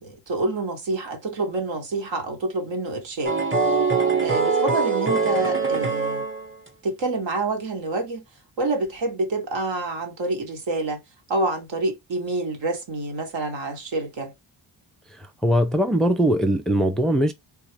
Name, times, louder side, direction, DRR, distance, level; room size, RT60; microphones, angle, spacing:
voice 1, 0.0-3.3 4.2-6.3 6.8-8.2 8.6-11.0 11.3-14.3, right 2 dB, 75° right, 1.3 m, -27 dB
sound 1, 3.2-6.7, right 4 dB, 25° right, 1.1 m, -23 dB
voice 2, 15.4-17.3, equal, ahead, 0.4 m, -20 dB
3.5 x 2.4 x 3.2 m
cardioid pair, 70°, 46 cm